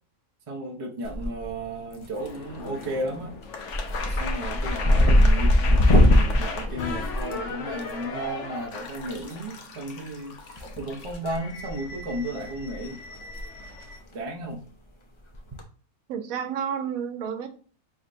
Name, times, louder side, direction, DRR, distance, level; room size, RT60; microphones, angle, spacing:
voice 1, 0.5-3.3 4.1-5.6 5.9-13.0 14.1-14.6, right 1 dB, 40° right, -1 dB, 0.5 m, -34 dB
sound 1, 1.0-1.6 1.9-2.4 2.8-3.1 3.4-7.8 9.2-9.3 10.6-11.4 11.6-11.9 12.4-12.5 12.7-12.8 13.2-13.4 13.7-13.8 15.3-15.6, left 1 dB, 50° left, 0.3 m, -21 dB
sound 2, 2.1-14.0, left 4 dB, 65° left, 0.9 m, -37 dB
voice 2, 16.1-17.5, right 7 dB, 85° right, 9 dB, 1.0 m, -30 dB
4.3 x 3.6 x 2.5 m, 0.41 s
omnidirectional pair, 1.4 m